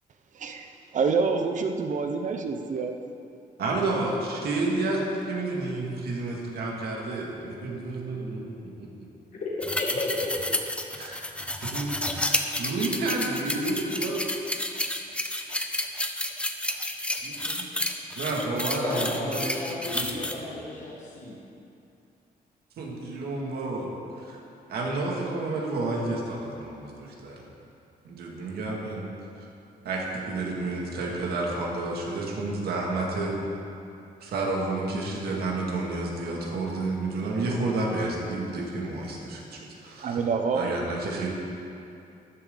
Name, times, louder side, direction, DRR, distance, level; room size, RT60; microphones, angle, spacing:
voice 1, 0.3-3.0 40.0-40.8, right 5 dB, 50° right, 5 dB, 0.9 m, -27 dB
voice 2, 3.6-8.9 10.9-11.2 11.4-14.2 17.2-17.7 18.2-19.5 19.9-20.6 22.8-23.9 24.2-24.4 24.7-27.4 28.0-29.1 29.8-33.4 34.2-40.2 40.5-41.3, right 2 dB, 80° right, -2 dB, 2.4 m, -30 dB
voice 3, 9.3-10.5 18.8-21.4, left 2 dB, 50° left, -4 dB, 1.7 m, -33 dB
sound 1, 9.6-20.3, left 1 dB, 5° left, 0.6 m, -31 dB
13.5 x 11.5 x 4.0 m, 2.6 s
wide cardioid pair, 165°, 16 cm